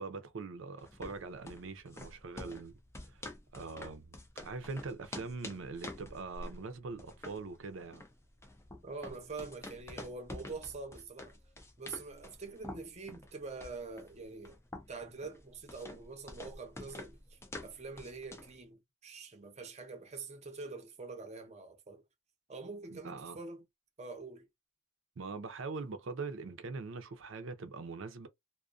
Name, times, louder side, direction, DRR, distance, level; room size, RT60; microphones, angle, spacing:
voice 1, 0.0-3.2 3.5-8.0 22.9-23.4 25.2-28.3, right 4 dB, 75° right, 0.5 m, -42 dB
sound 1, 0.8-18.6, left 1 dB, 15° left, 0.4 m, -48 dB
voice 2, 8.8-11.3 11.8-14.6 14.9-22.0 22.5-23.7 24.0-24.5, right 4 dB, 35° right, 0.7 m, -45 dB
2.3 x 2.1 x 2.5 m
head